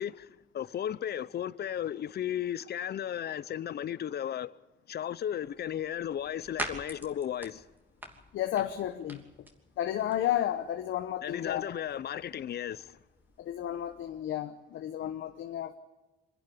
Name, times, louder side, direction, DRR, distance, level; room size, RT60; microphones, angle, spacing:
voice 1, 0.0-4.5 4.9-7.6 11.2-13.0, left 10 dB, 55° left, 0.7 m, -35 dB
sound 1, 5.4-14.0, right 1 dB, 10° right, 2.9 m, -46 dB
voice 2, 8.3-9.5 9.8-11.7 13.4-15.7, left 11 dB, 75° left, 1.0 m, -32 dB
25.0 x 11.0 x 10.0 m
cardioid pair, 90°, 20 cm